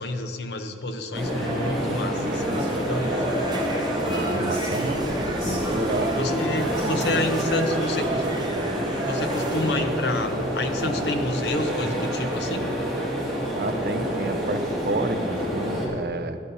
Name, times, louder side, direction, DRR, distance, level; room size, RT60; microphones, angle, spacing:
voice 1, 0.0-3.3 6.2-8.3 9.0-12.6, left 2 dB, 80° left, 7 dB, 0.7 m, -29 dB
sound 1, 1.1-15.9, equal, ahead, 2.0 m, -27 dB
Female singing, 1.2-8.6, equal, 40° left, 2.3 m, -38 dB
sound 2, 2.2-9.8, right 2 dB, 25° right, 0.7 m, -33 dB
voice 2, 4.1-5.2 5.4-6.1 13.5-16.4, right 3 dB, 55° right, 9 dB, 0.5 m, -30 dB
13.0 x 10.5 x 2.7 m, 2.6 s
head